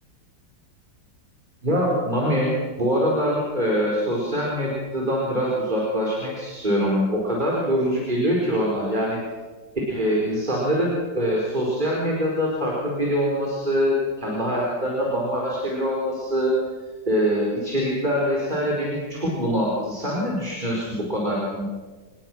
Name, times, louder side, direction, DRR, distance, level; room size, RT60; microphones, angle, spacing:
voice 1, 1.6-2.5 2.8-9.2 9.9-16.5 17.1-21.6, equal, 25° right, -3 dB, 4.6 m, -24 dB
27.5 x 19.5 x 6.2 m, 1.3 s
omnidirectional pair, 2.0 m